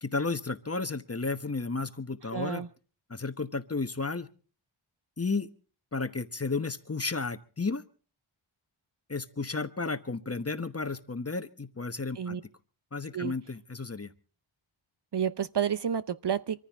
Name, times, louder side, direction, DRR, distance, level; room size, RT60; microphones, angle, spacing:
voice 1, 0.0-2.7 3.1-4.3 5.2-5.5 5.9-7.8 9.1-12.4 12.9-14.1, left 3 dB, 30° left, 1.1 m, -33 dB
voice 2, 2.3-2.7 12.2-12.4 13.1-13.3 15.1-16.6, right 8 dB, 55° right, 0.7 m, -30 dB
25.0 x 14.5 x 3.5 m
wide cardioid pair, 70°, 49 cm